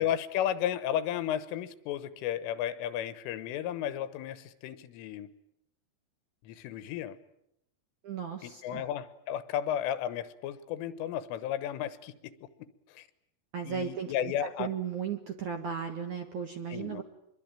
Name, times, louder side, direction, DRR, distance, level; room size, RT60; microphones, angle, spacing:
voice 1, 0.0-5.3 6.4-7.2 8.4-12.3 12.9-13.1 13.6-14.7 16.7-17.0, left 10 dB, 90° left, 13 dB, 3.8 m, -33 dB
voice 2, 8.0-8.8 13.5-17.0, right 7 dB, 60° right, 5 dB, 2.1 m, -36 dB
26.0 x 22.0 x 9.1 m, 0.81 s
omnidirectional pair, 5.6 m